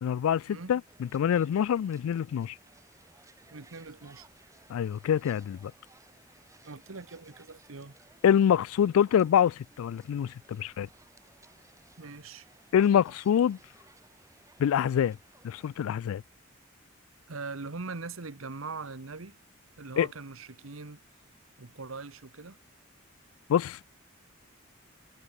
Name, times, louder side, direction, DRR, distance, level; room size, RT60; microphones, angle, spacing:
voice 1, 0.0-2.6 4.7-5.7 8.2-10.9 12.7-13.6 14.6-15.2 15.4-16.2 20.0-20.1 23.5-23.8, left 9 dB, 85° left, 0.3 m, -25 dB
sound 1, 0.9-15.8, right 3 dB, 15° right, 1.3 m, -60 dB
voice 2, 3.5-4.3 6.6-8.0 12.0-12.5 17.3-19.4 19.8-21.0 21.6-22.6, right 4 dB, 75° right, 1.2 m, -41 dB
head